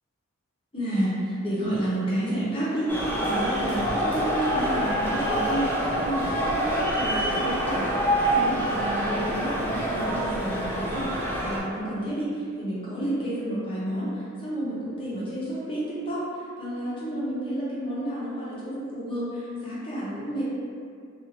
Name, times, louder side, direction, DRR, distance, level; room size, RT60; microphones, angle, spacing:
voice 1, 0.7-20.4, right 1 dB, 25° left, -9 dB, 0.8 m, -30 dB
sound 1, 2.9-11.6, right 1 dB, 10° left, 0.4 m, -26 dB
2.6 x 2.4 x 2.9 m, 2.3 s
head